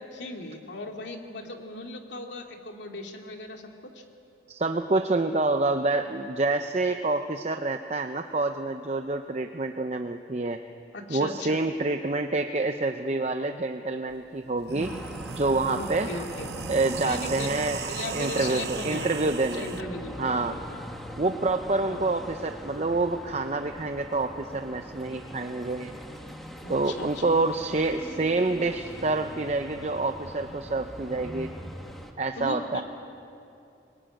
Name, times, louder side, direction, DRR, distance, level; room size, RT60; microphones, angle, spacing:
voice 1, 0.0-4.0 10.9-11.6 15.6-16.5 17.0-19.2 19.5-20.8 21.9-22.0 26.6-27.4 32.4-32.8, left 2 dB, 85° left, 2 dB, 2.5 m, -37 dB
voice 2, 4.5-10.6 11.1-15.0 15.3-16.1 16.7-17.8 18.1-19.8 20.2-20.6 21.2-25.9 26.7-31.5 32.2-32.8, right 2 dB, 40° right, 6 dB, 0.7 m, -27 dB
sound 1, 14.1-14.2 14.5-19.8, right 5 dB, 65° right, 0.9 m, -37 dB
sound 2, 14.8-32.1, equal, ahead, 1.5 m, -42 dB
22.5 x 20.0 x 9.1 m, 2.7 s
head